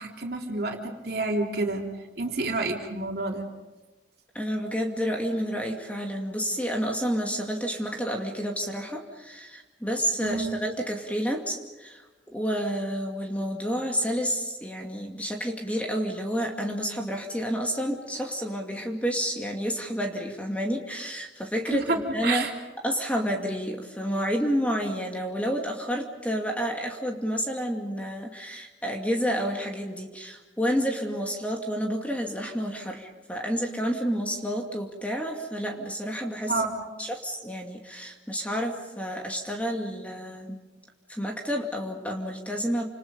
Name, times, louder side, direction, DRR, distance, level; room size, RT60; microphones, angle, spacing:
voice 1, 0.0-1.9 2.2-3.5 10.2-10.6 21.7-22.5 36.5-36.8, right 2 dB, 55° right, 1 dB, 3.5 m, -29 dB
voice 2, 4.3-22.5 22.8-36.6 37.0-40.6 41.1-42.9, equal, 5° left, 1 dB, 2.4 m, -30 dB
29.5 x 27.5 x 5.3 m, 1.2 s
head